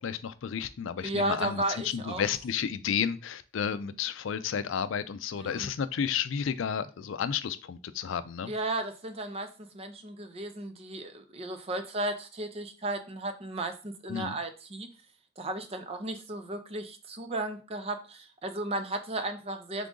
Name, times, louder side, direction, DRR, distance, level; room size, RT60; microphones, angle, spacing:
voice 1, 0.0-8.5 14.1-14.3, left 7 dB, 80° left, 0.4 m, -32 dB
voice 2, 1.0-2.2 5.4-5.7 8.5-14.9 15.4-19.9, right 2 dB, 30° right, 0.6 m, -34 dB
3.7 x 3.7 x 3.7 m
head